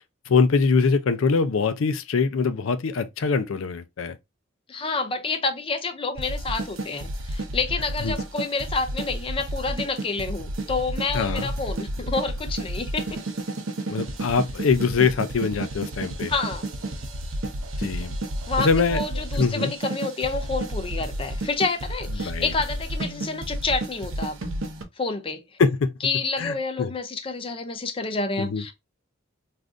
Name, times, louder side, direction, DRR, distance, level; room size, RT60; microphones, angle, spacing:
voice 1, 0.3-4.2 8.0-8.1 11.1-11.5 13.9-16.3 17.8-18.1 18.6-19.0 19.4-19.7 22.2-22.5 25.6-25.9 26.4-26.9 28.4-28.6, left 5 dB, 85° left, 0.5 m, -23 dB
voice 2, 4.7-13.2 16.3-16.7 18.5-24.4 25.0-25.4 26.0-28.8, left 3 dB, 25° left, 0.4 m, -28 dB
sound 1, 6.2-24.8, right 1 dB, 80° right, 0.7 m, -31 dB
3.5 x 2.5 x 2.5 m
head